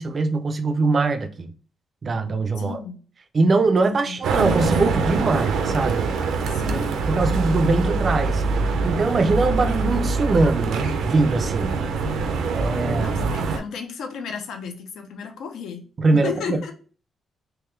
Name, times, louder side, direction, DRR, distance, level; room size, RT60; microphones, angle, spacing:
voice 1, 0.0-1.5 2.0-2.8 3.3-6.1 6.7-8.4 8.8-11.8 12.6-13.2 16.0-16.7, right 3 dB, 30° right, 0.3 m, -22 dB
voice 2, 2.6-3.0 4.0-4.2 6.4-6.9 7.3-7.4 12.8-15.8 16.1-16.7, left 6 dB, 85° left, 0.7 m, -34 dB
sound 1, 4.2-13.6, right 4 dB, 80° right, 0.5 m, -24 dB
3.6 x 2.9 x 3.1 m
wide cardioid pair, 175°, 0 cm